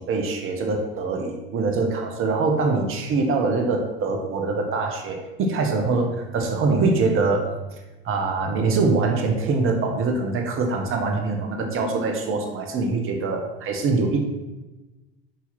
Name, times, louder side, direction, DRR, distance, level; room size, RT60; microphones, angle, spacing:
voice 1, 0.0-7.6 8.0-14.3, right 3 dB, 45° right, 3 dB, 1.5 m, -23 dB
7.4 x 4.7 x 5.9 m, 1.1 s
hypercardioid pair, 75°, 30 cm